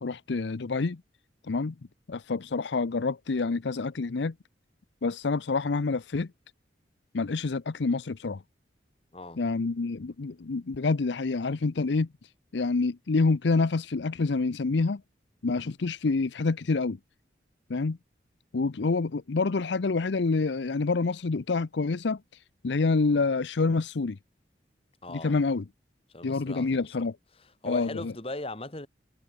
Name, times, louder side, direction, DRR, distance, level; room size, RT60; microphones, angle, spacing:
voice 1, 0.0-1.0 1.5-1.7 2.1-4.3 5.0-6.3 7.1-8.4 9.4-12.1 12.5-15.0 15.4-17.0 17.7-18.0 18.5-22.2 22.6-24.2 25.1-25.6 26.2-27.2 27.6-28.1, left 3 dB, 70° left, 0.6 m, -27 dB
voice 2, 9.1-9.4 25.0-25.4 26.1-26.9 27.4-28.9, left 2 dB, 30° left, 2.0 m, -39 dB
head